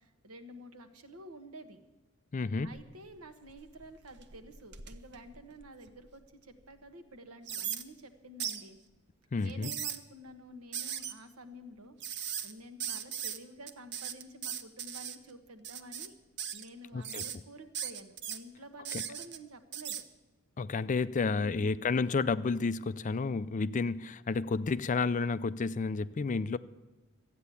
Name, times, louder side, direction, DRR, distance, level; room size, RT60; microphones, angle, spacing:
voice 1, 0.0-1.9 2.6-8.8 9.4-16.1 16.5-20.0 21.1-21.7, equal, 85° right, 8 dB, 1.3 m, -50 dB
voice 2, 2.3-2.7 9.3-9.7 16.9-17.2 20.6-26.6, left 4 dB, 35° left, 15 dB, 0.4 m, -31 dB
sound 1, 2.5-3.1 3.5-6.1 6.6-6.7 7.5-7.8 8.4-8.6 9.4-10.0 10.7-11.1 12.0-12.5 12.8-13.4 13.7-15.2 15.6-16.1 16.4-16.7 17.0-17.4 17.7-18.4 18.8-19.4 19.7-20.0, right 9 dB, 55° right, 0.8 m, -38 dB
13.5 x 9.1 x 8.4 m, 1.1 s
head